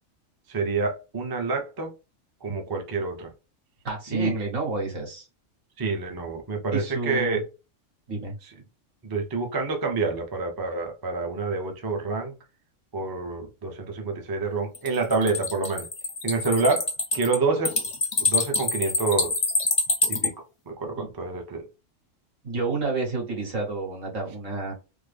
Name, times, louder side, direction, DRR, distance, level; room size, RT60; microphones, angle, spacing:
voice 1, 0.5-1.9 2.4-3.3 4.1-4.5 5.8-7.5 8.4-8.5 9.0-12.3 12.9-15.9 16.2-16.9 17.1-17.8 18.2-19.3 20.1-21.7, right 3 dB, 25° right, 0.5 m, -27 dB
voice 2, 3.8-5.3 6.7-7.4 8.1-8.4 21.0-21.1 22.4-24.7, right 3 dB, 80° right, 1.9 m, -30 dB
sound 1, 14.7-20.3, left 3 dB, 40° left, 0.5 m, -26 dB
3.5 x 2.0 x 3.3 m
omnidirectional pair, 1.3 m